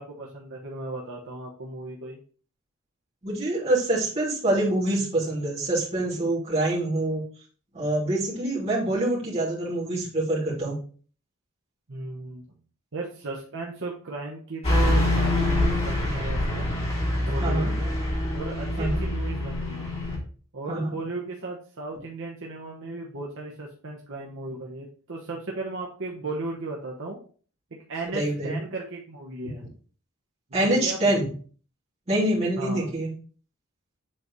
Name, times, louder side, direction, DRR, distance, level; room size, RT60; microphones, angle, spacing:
voice 1, 0.0-2.2 11.9-12.5 12.9-16.7 17.2-17.9 18.3-19.9 20.5-27.2 27.9-29.6 30.6-31.2 32.6-32.9, right 2 dB, 60° right, -1 dB, 1.0 m, -35 dB
voice 2, 3.2-7.2 7.7-10.7 16.6-16.7 17.4-17.7 18.8-19.0 20.7-21.0 28.1-28.6 30.5-31.3 32.1-33.1, right 1 dB, 30° right, -6 dB, 2.8 m, -25 dB
Car passing by / Truck, 14.6-20.2, left 1 dB, 30° left, 2.7 m, -25 dB
7.7 x 4.0 x 3.1 m, 0.42 s
head